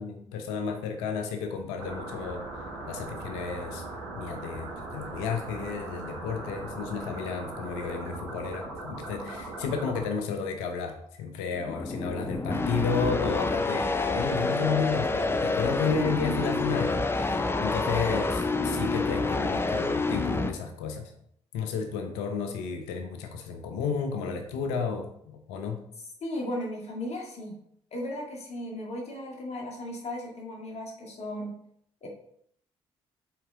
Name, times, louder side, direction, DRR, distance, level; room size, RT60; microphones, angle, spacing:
voice 1, 0.0-2.5 2.9-3.8 4.1-21.1 21.5-25.8, left 5 dB, 75° left, 5 dB, 0.8 m, -32 dB
sound 1, 1.8-10.0, right 2 dB, 85° right, 1.2 m, -39 dB
sound 2, 11.5-20.5, left 3 dB, 15° left, 0.6 m, -28 dB
voice 2, 26.2-27.6 27.9-31.5 32.0-32.1, left 1 dB, 45° left, 0 dB, 1.9 m, -36 dB
5.9 x 4.6 x 3.5 m, 0.70 s
hypercardioid pair, 45°, 15 cm